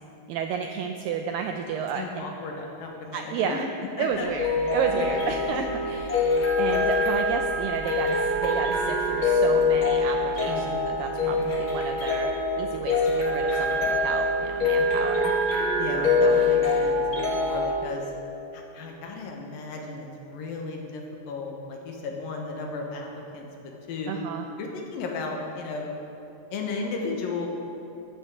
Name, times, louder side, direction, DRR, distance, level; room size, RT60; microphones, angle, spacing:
voice 1, 0.3-2.2 3.1-3.7 4.0-15.8 24.1-24.5, right 7 dB, 85° right, 5 dB, 2.0 m, -32 dB
voice 2, 1.9-3.6 4.0-4.3 5.0-5.3 5.5-5.8 10.5-11.6 15.8-18.1 18.5-23.1 23.3-23.5 23.9-24.2 24.6-25.9 26.5-27.5, left 4 dB, 70° left, 1 dB, 2.7 m, -35 dB
sound 1, 4.1-17.7, left 2 dB, 50° left, 1.7 m, -24 dB
14.5 x 12.0 x 3.7 m, 3.0 s
omnidirectional pair, 4.5 m